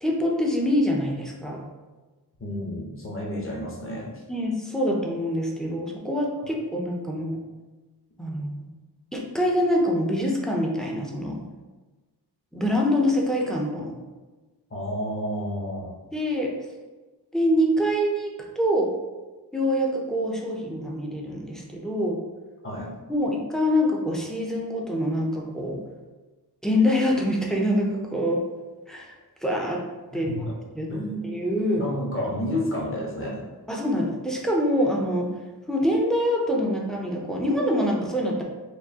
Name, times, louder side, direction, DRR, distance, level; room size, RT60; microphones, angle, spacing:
voice 1, 0.0-1.6 4.3-7.4 8.2-8.6 9.1-11.4 12.5-13.9 16.1-16.5 17.3-18.9 19.5-22.2 23.1-25.8 26.6-28.4 28.9-29.1 29.4-29.8 30.1-30.5 30.7-30.9 31.2-31.9 33.7-35.3 35.7-38.4, equal, ahead, -2 dB, 0.5 m, -25 dB
voice 2, 2.4-4.2 14.7-15.9 22.6-22.9 30.1-30.5 30.9-31.3 31.8-33.4, equal, 30° left, -3 dB, 0.9 m, -30 dB
4.6 x 2.6 x 2.8 m, 1.2 s
wide cardioid pair, 160°, 40 cm